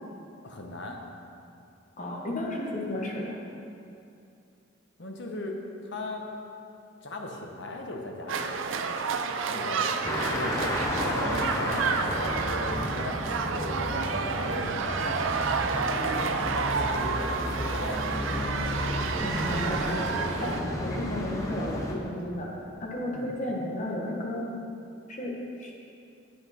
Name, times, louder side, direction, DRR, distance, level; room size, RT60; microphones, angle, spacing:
voice 1, 0.4-1.0 5.0-5.6 5.8-6.3 7.0-8.9 9.5-18.1 23.1-23.3, left 2 dB, 60° left, 2 dB, 1.0 m, -38 dB
voice 2, 2.0-3.4 19.2-20.1 20.4-20.5 20.8-22.5 22.8-24.5 25.1-25.3 25.6-25.7, left 1 dB, 35° left, -2 dB, 1.2 m, -33 dB
sound 1, 8.3-20.6, right 5 dB, 75° right, 0.4 m, -30 dB
sound 2, 10.0-21.9, left 1 dB, 15° left, 0.7 m, -32 dB
7.9 x 7.7 x 4.2 m, 2.6 s
head